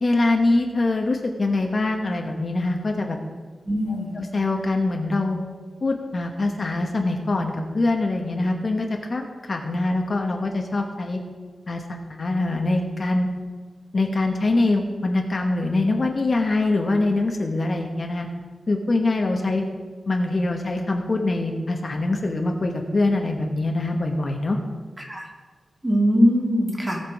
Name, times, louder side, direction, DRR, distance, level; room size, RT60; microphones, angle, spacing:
voice 1, 0.0-3.2 3.9-5.4 5.8-11.2 11.7-13.3 13.9-18.3 18.7-19.6 20.1-24.6, left 2 dB, 45° left, 2 dB, 1.1 m, -24 dB
voice 2, 3.6-4.2 25.0-25.3 25.8-27.0, equal, 20° right, -1 dB, 2.3 m, -21 dB
17.5 x 6.0 x 4.7 m, 1.4 s
wide cardioid pair, 110°, 0 cm